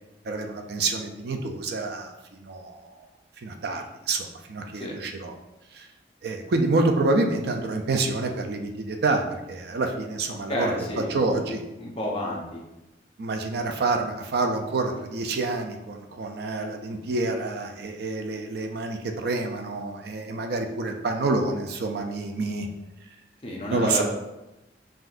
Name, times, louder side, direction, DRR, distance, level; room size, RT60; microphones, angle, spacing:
voice 1, 0.2-3.1 3.4-5.3 5.7-5.9 6.2-11.6 13.2-22.7 23.7-24.0, right 3 dB, 60° right, 4 dB, 0.4 m, -28 dB
voice 2, 10.5-11.4 11.8-12.6 23.4-24.0, equal, 35° left, -2 dB, 0.8 m, -30 dB
5.7 x 2.6 x 2.5 m, 0.97 s
head